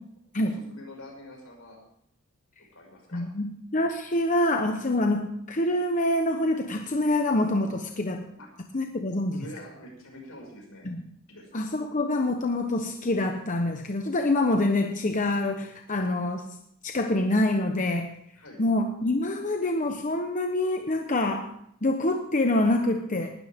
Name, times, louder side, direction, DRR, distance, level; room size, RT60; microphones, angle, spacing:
voice 1, 0.4-1.8 2.7-3.2 8.4-8.5 9.3-10.9 11.3-11.5 18.4-18.6, left 1 dB, 80° left, 0 dB, 6.0 m, -45 dB
voice 2, 3.1-8.2 8.7-9.3 10.8-11.0 11.5-16.5 16.8-18.1 18.6-21.5 21.8-23.3, left 1 dB, 35° left, 4 dB, 1.0 m, -26 dB
19.5 x 12.5 x 3.6 m, 0.71 s
head